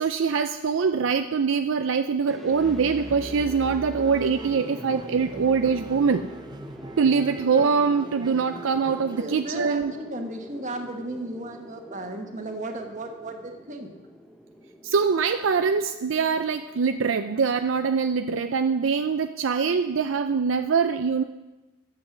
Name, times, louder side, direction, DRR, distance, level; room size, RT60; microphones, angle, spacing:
voice 1, 0.0-6.3 7.0-9.9 14.8-21.2, right 5 dB, 70° right, 8 dB, 0.5 m, -23 dB
sound 1, 2.3-18.4, left 1 dB, ahead, 0.9 m, -45 dB
sound 2, 2.5-9.2, right 1 dB, 20° right, 0.6 m, -41 dB
voice 2, 9.1-14.0, right 1 dB, 40° right, 4 dB, 1.4 m, -35 dB
11.5 x 7.6 x 7.2 m, 1.1 s
head